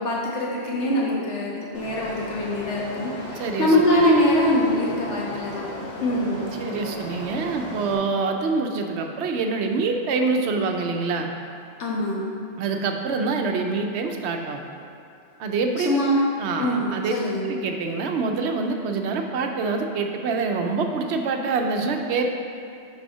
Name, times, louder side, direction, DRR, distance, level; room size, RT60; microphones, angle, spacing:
voice 1, 0.0-5.6 6.0-6.4 11.8-12.2 15.8-16.2 16.6-17.4, left 1 dB, 80° left, -5 dB, 1.5 m, -23 dB
sound 1, 1.7-7.9, left 1 dB, 40° left, 1.0 m, -36 dB
voice 2, 3.4-3.7 6.6-11.3 12.6-14.6 15.4-16.0 16.4-17.1 17.5-22.3, right 4 dB, 75° right, 4 dB, 0.8 m, -25 dB
5.4 x 4.2 x 5.4 m, 2.4 s
omnidirectional pair, 1.2 m